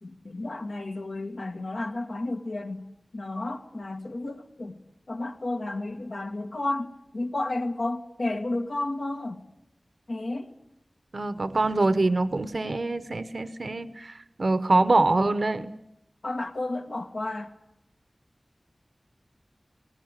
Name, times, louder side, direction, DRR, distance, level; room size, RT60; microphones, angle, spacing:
voice 1, 0.0-2.9 3.1-4.8 5.1-9.4 10.1-10.5 16.2-17.5, left 2 dB, 85° left, 1.9 m, -32 dB
voice 2, 11.1-14.1 14.4-15.7, right 2 dB, 70° right, 1.0 m, -24 dB
20.0 x 18.5 x 9.0 m
wide cardioid pair, 55°, 0 cm